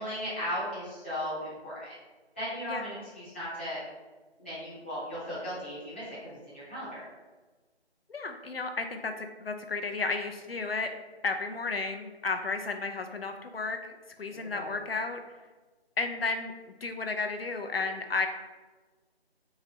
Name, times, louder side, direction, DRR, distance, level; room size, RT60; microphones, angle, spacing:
voice 1, 0.0-2.0 2.4-3.8 4.4-7.0 14.3-14.7, equal, 10° left, -14 dB, 0.8 m, -37 dB
voice 2, 2.7-3.0 8.1-10.9 11.2-15.2 16.0-16.5 16.8-18.3, left 3 dB, 60° left, 5 dB, 0.5 m, -33 dB
3.9 x 2.5 x 4.1 m, 1.2 s
figure-of-eight pair, 165°, 33 cm